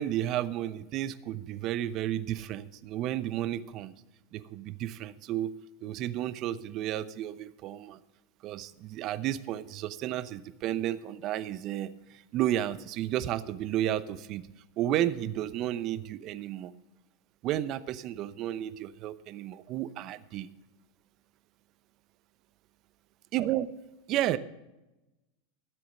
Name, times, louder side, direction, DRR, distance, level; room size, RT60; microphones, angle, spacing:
voice 1, 0.0-3.9 4.3-5.5 5.8-8.0 8.4-14.5 14.8-16.7 17.4-20.5 23.3-23.7 24.1-24.4, right 12 dB, 45° right, 14 dB, 0.8 m, -32 dB
13.5 x 7.7 x 6.4 m, 1.0 s
hypercardioid pair, 95°, 0 cm